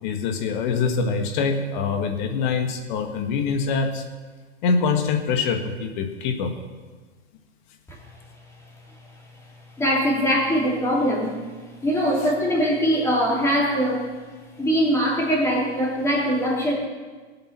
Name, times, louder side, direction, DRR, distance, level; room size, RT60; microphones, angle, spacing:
voice 1, 0.0-4.0 4.6-6.5, left 5 dB, 45° left, 6 dB, 1.7 m, -24 dB
voice 2, 9.8-11.4 11.8-14.0 14.6-16.7, equal, 10° left, -3 dB, 3.2 m, -22 dB
19.0 x 7.9 x 6.0 m, 1.4 s
hypercardioid pair, 145°, 34 cm